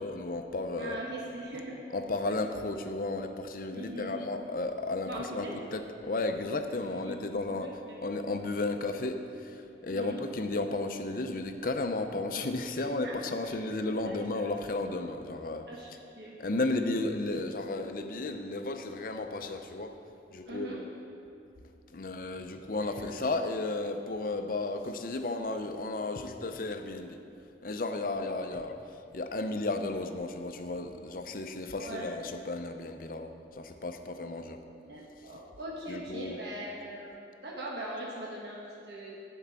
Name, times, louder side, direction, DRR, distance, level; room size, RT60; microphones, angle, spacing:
voice 1, 0.0-1.0 1.9-15.7 16.4-20.0 20.3-20.9 21.9-27.2 27.6-28.8 29.1-34.6 35.9-36.4, left 2 dB, 50° left, 7 dB, 0.6 m, -34 dB
voice 2, 0.8-1.8 2.2-2.4 3.7-4.2 5.1-5.6 6.8-8.0 9.9-10.2 13.0-13.2 13.4-13.5 13.9-14.5 15.7-15.9 16.2-16.6 20.5-20.8 22.8-23.2 31.8-32.2 34.9-39.2, right 1 dB, 70° right, -4 dB, 1.3 m, -41 dB
10.5 x 4.6 x 7.5 m, 2.6 s
head